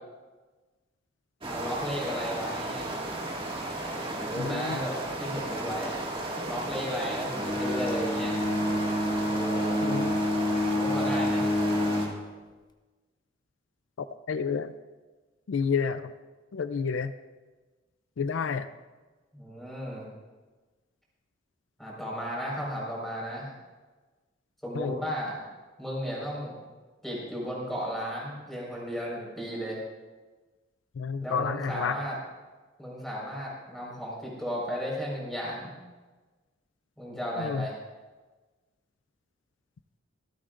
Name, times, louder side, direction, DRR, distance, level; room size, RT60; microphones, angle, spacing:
voice 1, 1.4-2.9 4.2-6.0 6.4-8.3 9.3-9.8 10.7-11.4 19.3-20.1 21.8-23.5 24.6-25.4 25.8-26.6 27.0-29.8 31.2-32.2 32.8-35.7 37.0-37.7, equal, ahead, -5 dB, 4.7 m, -34 dB
sound 1, 1.4-12.1, right 2 dB, 30° right, 2.0 m, -34 dB
voice 2, 4.4-4.8 9.8-10.2 14.0-14.7 15.5-16.1 16.5-17.1 18.2-18.7 24.7-25.0 30.9-32.0 37.4-37.7, left 6 dB, 80° left, 12 dB, 0.4 m, -30 dB
Bowed string instrument, 7.3-12.2, left 1 dB, 20° left, 0.7 m, -28 dB
25.5 x 8.7 x 2.5 m, 1.3 s
head